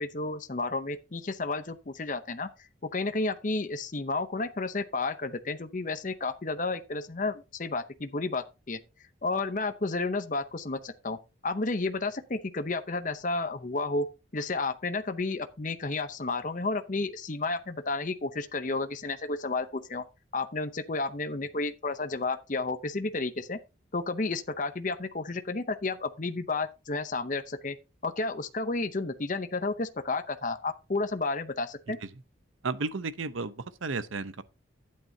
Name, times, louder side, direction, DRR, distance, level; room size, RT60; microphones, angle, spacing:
voice 1, 0.0-2.5 2.9-8.8 9.2-11.2 11.4-14.1 14.3-20.0 20.3-23.6 23.9-27.8 28.0-32.0, left 3 dB, 40° left, 0.7 m, -31 dB
voice 2, 32.6-34.4, right 3 dB, 85° right, 0.8 m, -33 dB
12.0 x 8.6 x 2.8 m
head